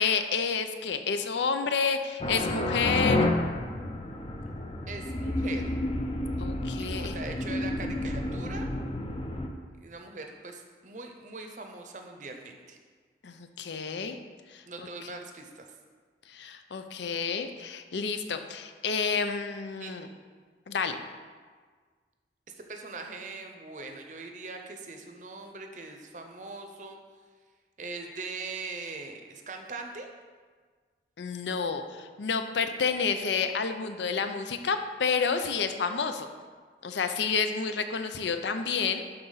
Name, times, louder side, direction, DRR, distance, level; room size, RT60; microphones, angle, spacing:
voice 1, 0.0-3.3 6.4-7.2 13.2-14.2 14.5-14.9 16.3-20.1 20.7-21.0 31.2-36.3 36.8-39.0, left 5 dB, 85° left, 8 dB, 0.6 m, -30 dB
sound 1, 2.2-9.5, left 1 dB, 30° left, 0.5 m, -30 dB
voice 2, 4.9-5.7 6.9-8.7 9.8-12.8 14.7-15.6 19.8-19.9 22.6-27.0 27.8-30.1, right 3 dB, 45° right, 4 dB, 0.7 m, -41 dB
11.5 x 4.0 x 4.0 m, 1.6 s
head